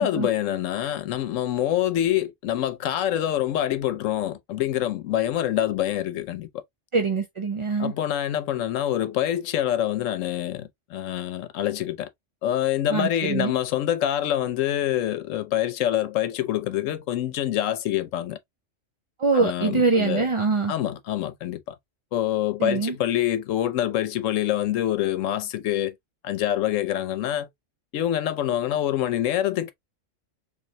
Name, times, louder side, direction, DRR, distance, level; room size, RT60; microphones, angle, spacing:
voice 1, 0.0-6.5 7.8-12.1 12.4-18.4 19.3-20.3 20.7-21.7 22.1-25.9 26.2-27.5 27.9-29.7, left 12 dB, 85° left, 1.0 m, -26 dB
voice 2, 6.9-7.9 12.9-13.5 19.2-20.7 22.6-23.0, right 4 dB, 40° right, 0.4 m, -23 dB
3.7 x 3.2 x 2.7 m
omnidirectional pair, 1.3 m